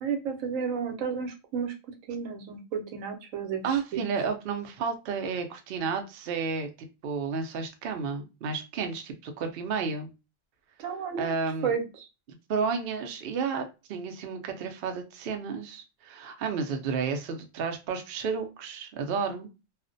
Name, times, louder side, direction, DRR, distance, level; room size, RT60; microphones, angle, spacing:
voice 1, 0.0-1.7 2.1-3.6 3.9-4.0 10.8-11.4 11.6-12.1, right 6 dB, 80° right, 5 dB, 1.0 m, -32 dB
voice 2, 3.6-6.7 7.0-10.1 11.2-11.7 12.5-19.5, right 5 dB, 65° right, 5 dB, 0.6 m, -31 dB
2.4 x 2.1 x 2.5 m, 0.28 s
omnidirectional pair, 1.4 m